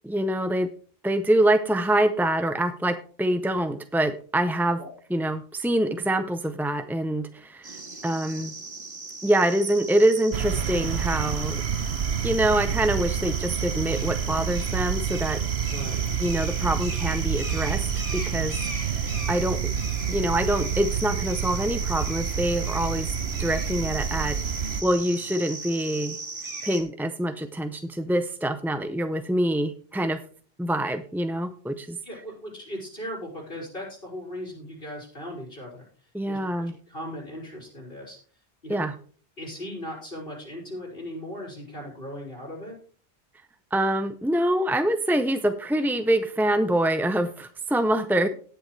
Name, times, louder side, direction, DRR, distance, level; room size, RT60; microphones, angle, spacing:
voice 1, 0.0-0.7 1.0-4.8 5.1-7.8 8.0-8.5 9.2-11.6 12.2-15.4 16.2-17.8 18.1-19.7 20.1-23.1 23.4-26.2 26.6-30.2 30.6-32.0 36.1-36.7 38.7-38.9 43.7-48.3, right 1 dB, 5° right, 9 dB, 0.3 m, -25 dB
sound 1, 7.6-26.8, right 3 dB, 60° right, 2.1 m, -37 dB
sound 2, 10.3-24.8, right 8 dB, 85° right, 1.1 m, -28 dB
voice 2, 15.7-16.0 19.2-19.3 32.0-35.8 36.3-38.2 38.6-38.8 39.4-42.7, equal, 65° left, -3 dB, 5.0 m, -38 dB
18.5 x 6.8 x 3.2 m, 0.43 s
omnidirectional pair, 1.0 m